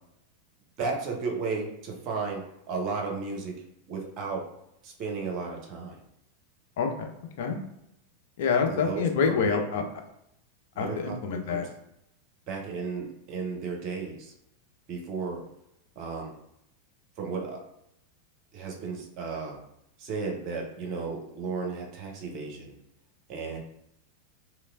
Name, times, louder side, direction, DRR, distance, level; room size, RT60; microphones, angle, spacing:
voice 1, 0.8-4.5 4.8-6.0 8.7-9.6 10.7-11.6 12.5-14.3 14.9-15.4 16.0-16.3 17.2-17.6 18.5-19.6 20.0-22.7 23.3-23.6, right 4 dB, 40° right, 0 dB, 0.8 m, -34 dB
voice 2, 6.8-7.1 7.4-7.6 8.4-9.8 10.8-11.7, left 6 dB, 55° left, 4 dB, 0.5 m, -26 dB
3.1 x 3.1 x 2.5 m, 0.80 s
figure-of-eight pair, 90°, 0 cm